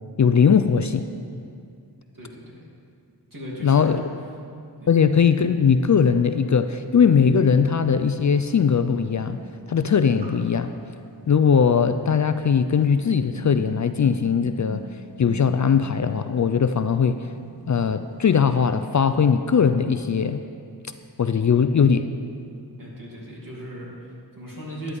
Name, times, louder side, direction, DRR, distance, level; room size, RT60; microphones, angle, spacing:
voice 1, 0.2-1.0 3.6-4.0 4.9-9.4 9.7-10.7 11.3-14.8 15.2-17.3 17.7-20.4 21.2-22.1, left 6 dB, 45° left, 10 dB, 0.4 m, -20 dB
voice 2, 2.1-2.6 3.3-4.0 4.8-5.0 22.8-25.0, equal, 50° right, -4 dB, 2.8 m, -37 dB
sound 1, 6.5-6.6 7.8-18.9 19.2-19.5, right 1 dB, 85° right, 1.4 m, -44 dB
12.5 x 10.0 x 3.5 m, 2.3 s
wide cardioid pair, 55°, 41 cm